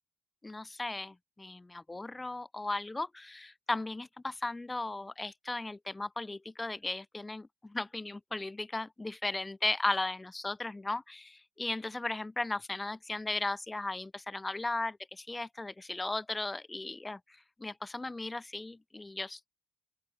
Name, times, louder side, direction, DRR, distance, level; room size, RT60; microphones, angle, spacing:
voice 1, 0.4-19.5, left 2 dB, 15° left, 2.9 m, -36 dB
open air
figure-of-eight pair, 45°, 0 cm